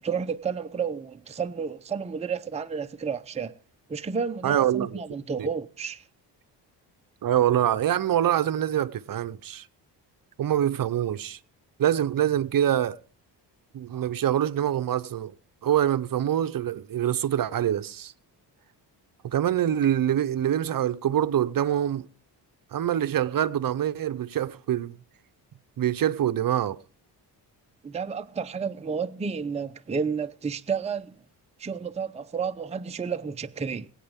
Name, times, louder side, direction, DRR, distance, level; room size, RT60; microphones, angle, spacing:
voice 1, 0.0-3.5 3.9-6.0 27.8-31.2 31.6-33.9, right 6 dB, 15° right, 0.6 m, -31 dB
voice 2, 4.4-5.0 5.4-5.5 7.2-9.7 10.4-11.4 11.8-13.0 13.7-15.3 15.6-18.1 19.2-22.1 22.7-24.9 25.8-26.8, right 11 dB, 50° right, 0.7 m, -25 dB
22.5 x 9.0 x 3.6 m
cardioid pair, 105°, 43 cm